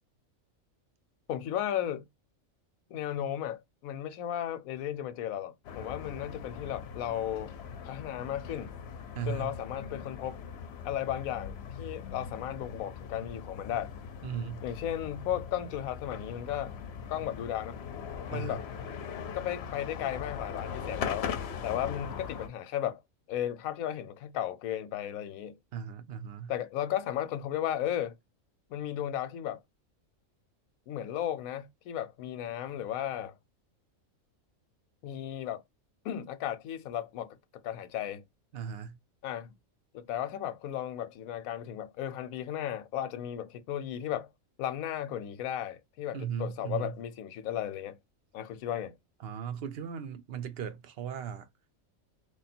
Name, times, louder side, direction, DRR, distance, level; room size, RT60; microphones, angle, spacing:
voice 1, 1.3-2.0 2.9-7.5 7.8-8.8 9.2-10.4 10.8-13.9 14.6-16.7 17.1-17.8 18.3-18.7 19.3-21.3 21.6-23.0 23.3-25.6 26.5-28.1 28.7-29.6 30.9-33.3 35.0-35.6 36.0-37.4 37.6-38.2 39.2-39.5 39.9-44.3 44.6-48.0 48.3-48.9, left 11 dB, 90° left, 1.0 m, -35 dB
sound 1, 5.6-22.5, left 7 dB, 60° left, 0.7 m, -40 dB
voice 2, 9.1-9.5 14.2-14.6 18.3-18.6 25.7-26.5 38.5-39.0 46.1-46.9 49.2-51.5, right 7 dB, 60° right, 0.7 m, -37 dB
3.3 x 2.3 x 4.1 m
omnidirectional pair, 1.4 m